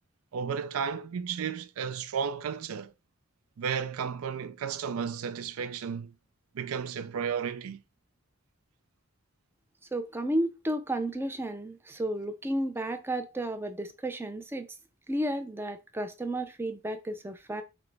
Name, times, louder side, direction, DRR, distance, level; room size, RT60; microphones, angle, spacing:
voice 1, 0.3-2.9 3.6-6.1 6.5-7.8, right 7 dB, 90° right, 0.4 m, -33 dB
voice 2, 9.9-14.7 15.1-17.6, right 1 dB, 10° right, 0.4 m, -32 dB
6.0 x 2.0 x 3.3 m
head